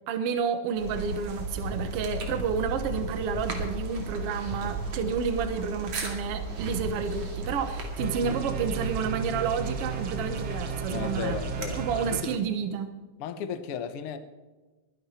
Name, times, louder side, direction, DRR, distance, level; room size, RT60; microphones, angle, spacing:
voice 1, 0.1-11.4 11.8-12.9, right 6 dB, 80° right, 9 dB, 1.3 m, -30 dB
sound 1, 0.8-12.2, right 2 dB, 45° right, 3.2 m, -35 dB
sound 2, 8.0-12.4, right 7 dB, 60° right, 1.9 m, -36 dB
voice 2, 10.9-12.4 13.2-14.2, left 8 dB, 85° left, 10 dB, 1.2 m, -35 dB
22.5 x 11.0 x 4.3 m, 1.3 s
omnidirectional pair, 4.2 m